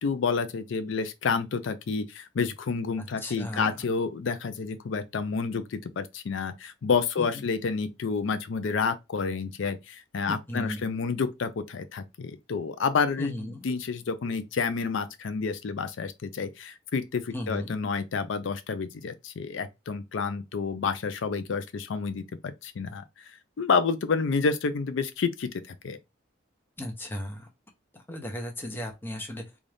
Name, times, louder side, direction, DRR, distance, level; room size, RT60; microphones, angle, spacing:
voice 1, 0.0-23.2 23.6-26.0, left 5 dB, 75° left, 0.4 m, -29 dB
voice 2, 3.0-3.8 7.2-7.5 10.3-10.8 13.2-13.6 17.3-17.7 26.8-27.5 27.9-29.4, left 1 dB, 10° left, 0.8 m, -36 dB
3.9 x 2.4 x 3.3 m
head